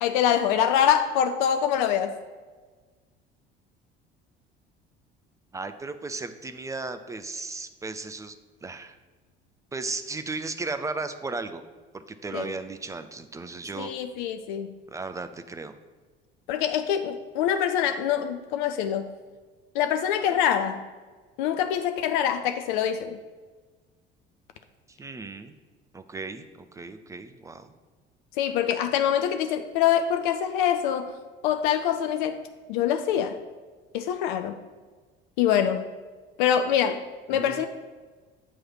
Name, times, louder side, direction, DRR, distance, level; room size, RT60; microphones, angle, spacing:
voice 1, 0.0-2.1 12.3-12.5 13.8-14.8 16.5-19.1 19.7-20.9 21.4-23.2 28.4-31.2 31.4-32.4 32.7-33.4 33.9-34.6 35.4-35.9 36.4-37.7, left 9 dB, 55° left, 8 dB, 0.4 m, -25 dB
voice 2, 5.5-8.4 8.6-9.0 9.7-11.6 11.9-13.9 14.9-15.7 24.9-25.5 25.9-27.7 37.3-37.7, right 3 dB, 10° right, 9 dB, 0.3 m, -35 dB
8.0 x 3.1 x 6.0 m, 1.4 s
figure-of-eight pair, 60°, 29 cm